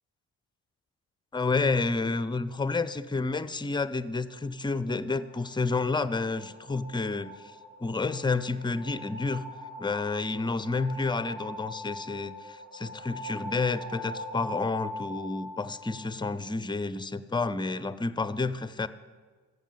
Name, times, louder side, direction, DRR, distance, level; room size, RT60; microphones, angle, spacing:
voice 1, 1.3-7.6 7.8-9.4 9.8-18.9, left 3 dB, 10° left, 15 dB, 0.6 m, -30 dB
sound 1, 4.8-16.5, left 1 dB, 55° right, 3.9 m, -43 dB
14.5 x 8.2 x 5.7 m, 1.4 s
figure-of-eight pair, 45°, 42 cm